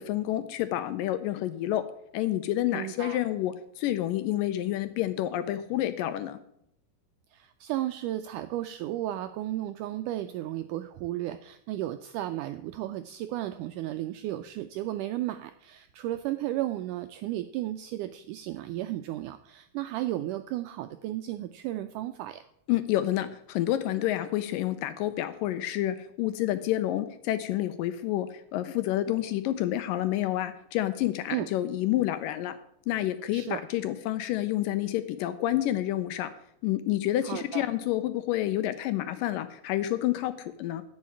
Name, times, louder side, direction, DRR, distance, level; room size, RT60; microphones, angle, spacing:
voice 1, 0.0-1.8 2.1-6.4 22.7-32.6 32.9-36.3 36.6-40.8, left 13 dB, 80° left, 11 dB, 2.1 m, -29 dB
voice 2, 2.7-3.2 7.3-22.4 31.3-31.5 33.3-33.6 37.2-37.6, right 14 dB, 90° right, 9 dB, 1.8 m, -34 dB
10.0 x 5.7 x 8.6 m, 0.73 s
omnidirectional pair, 4.2 m